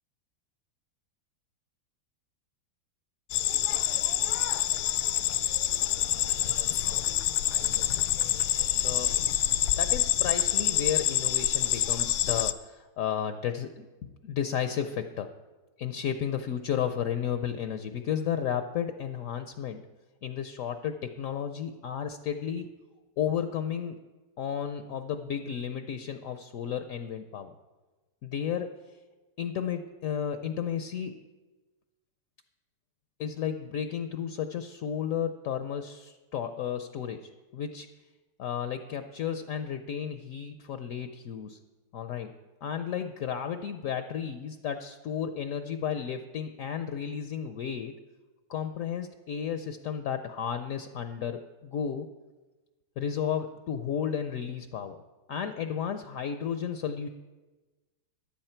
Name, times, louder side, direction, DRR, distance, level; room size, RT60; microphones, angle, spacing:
sound 1, 3.3-12.5, left 12 dB, 90° left, 1.3 m, -27 dB
voice 1, 6.3-8.2 8.7-9.2 9.8-15.3 15.8-19.8 20.2-22.7 23.2-24.0 24.4-27.5 28.2-28.7 29.4-31.1 33.2-37.9 38.4-41.6 41.9-42.3 42.6-48.0 48.5-52.1 53.0-55.0 55.3-57.1, left 8 dB, 70° left, 8 dB, 0.8 m, -33 dB
14.5 x 10.5 x 4.4 m, 1.2 s
omnidirectional pair, 2.0 m